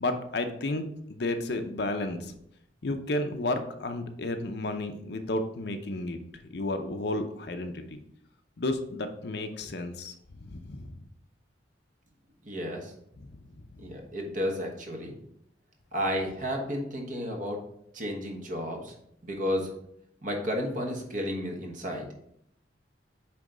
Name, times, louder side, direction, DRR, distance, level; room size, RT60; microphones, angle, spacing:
voice 1, 0.0-0.8 1.1-2.3 2.8-6.2 6.5-8.0 8.6-10.1 10.4-10.9 13.2-13.3, left 2 dB, 55° left, 7 dB, 0.6 m, -32 dB
voice 2, 12.4-12.9 13.8-15.1 15.9-17.6 17.9-18.9 19.2-19.7 20.2-22.1, equal, 40° right, 2 dB, 1.2 m, -32 dB
8.8 x 3.1 x 3.9 m, 0.72 s
head